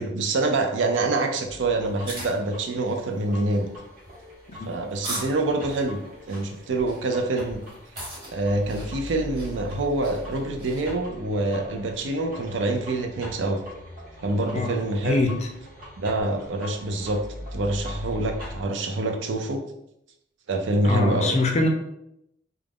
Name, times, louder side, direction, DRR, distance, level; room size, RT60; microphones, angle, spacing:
voice 1, 0.0-3.7 4.7-6.0 6.3-7.6 8.3-13.6 14.2-15.2 16.0-17.2 17.5-19.6 20.5-21.4, right 2 dB, 80° right, 4 dB, 0.4 m, -26 dB
sound 1, 1.5-18.6, left 1 dB, 50° right, 1.1 m, -41 dB
sound 2, 1.8-10.9, right 1 dB, 25° right, 1.0 m, -41 dB
voice 2, 15.0-15.5 20.8-21.7, left 2 dB, 35° left, 3 dB, 0.4 m, -23 dB
2.4 x 2.1 x 3.3 m, 0.79 s
head